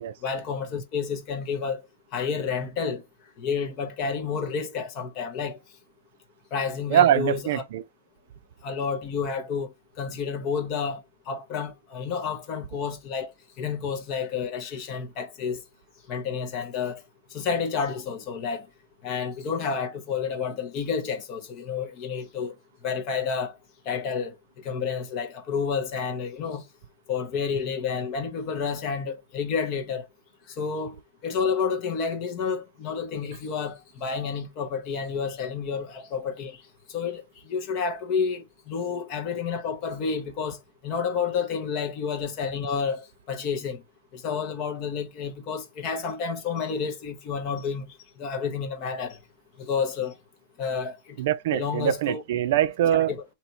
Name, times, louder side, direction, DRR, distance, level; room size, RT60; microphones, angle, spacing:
voice 1, 0.2-1.8 2.1-3.0 3.4-5.6 6.5-7.6 8.6-13.3 13.6-15.6 16.1-17.0 17.3-18.7 19.0-22.5 22.8-23.5 23.9-24.3 24.6-26.6 27.1-30.1 30.6-36.6 36.9-40.6 40.8-43.8 44.1-49.2 49.6-50.1 50.6-51.2 51.5-52.2 52.9-53.2, left 6 dB, 30° left, 0.9 m, -30 dB
voice 2, 6.9-7.8 51.2-53.1, right 11 dB, 55° right, 0.5 m, -23 dB
4.1 x 2.9 x 4.4 m
supercardioid pair, 170°, 0 cm